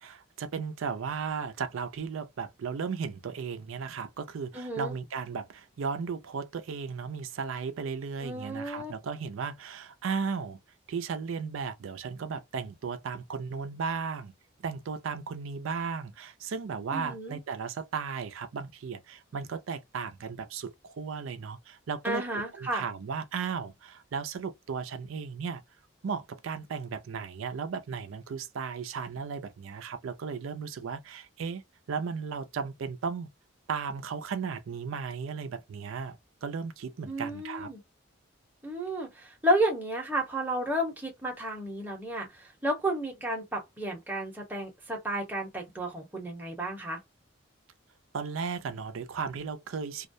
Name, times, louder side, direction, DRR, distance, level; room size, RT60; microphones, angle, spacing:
voice 1, 0.0-10.6 10.9-14.3 14.6-25.6 26.0-33.3 33.7-37.7 48.1-50.1, right 5 dB, 80° right, 0.4 m, -35 dB
voice 2, 4.5-5.0 8.2-8.9 16.9-17.4 22.0-22.8 37.1-37.8 38.6-47.0, right 1 dB, 10° right, 0.8 m, -32 dB
2.3 x 2.1 x 2.6 m
head